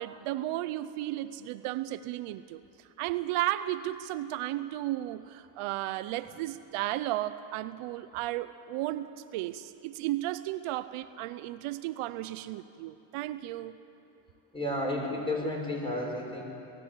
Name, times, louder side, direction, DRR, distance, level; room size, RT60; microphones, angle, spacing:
voice 1, 0.0-2.6 3.0-13.8, right 15 dB, 85° right, 13 dB, 0.8 m, -34 dB
voice 2, 14.5-16.4, left 1 dB, 10° left, -2 dB, 6.6 m, -32 dB
22.0 x 14.0 x 8.5 m, 3.0 s
cardioid pair, 85°, 50 cm